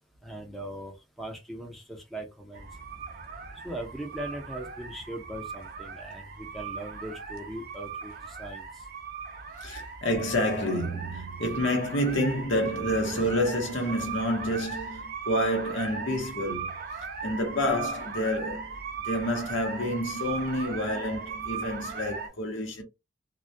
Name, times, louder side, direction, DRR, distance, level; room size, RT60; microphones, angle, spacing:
voice 1, 0.2-0.9 1.2-2.7 3.6-8.6, right 1 dB, ahead, 0.5 m, -39 dB
sound 1, 2.5-22.3, right 6 dB, 50° right, 0.5 m, -38 dB
voice 2, 9.6-18.8 19.0-22.8, left 1 dB, 80° left, 0.8 m, -29 dB
2.2 x 2.1 x 2.6 m
head